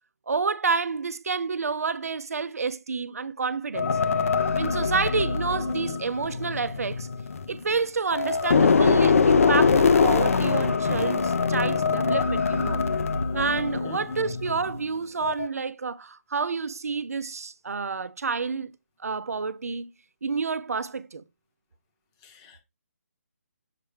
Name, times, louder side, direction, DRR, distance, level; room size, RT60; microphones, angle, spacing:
voice 1, 0.3-4.0 4.5-7.1 7.5-12.9 13.3-18.7 19.0-19.9 20.2-21.2, right 5 dB, 70° right, 0.6 m, -29 dB
sound 1, 3.7-7.8 8.1-14.8 15.2-15.5, left 5 dB, 60° left, 0.6 m, -23 dB
voice 2, 13.8-14.3 22.2-22.6, left 5 dB, 20° left, 0.9 m, -42 dB
6.7 x 4.4 x 3.3 m
figure-of-eight pair, 155°, 8 cm